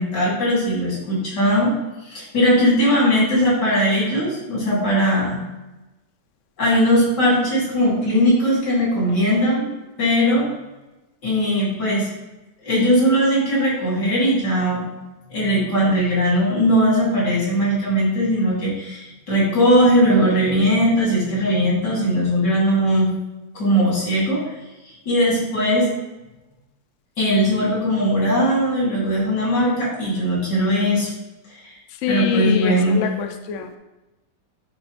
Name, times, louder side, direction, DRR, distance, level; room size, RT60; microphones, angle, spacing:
voice 1, 0.0-1.7 2.1-5.4 6.6-9.7 10.0-10.5 11.2-12.1 12.6-14.8 15.3-23.1 23.5-24.4 24.8-25.9 27.2-31.1 31.6-31.7 32.1-33.0, equal, 80° left, -6 dB, 3.4 m, -19 dB
voice 2, 32.0-33.8, left 7 dB, 60° left, 6 dB, 0.8 m, -24 dB
10.0 x 4.1 x 3.2 m, 1.0 s
omnidirectional pair, 1.8 m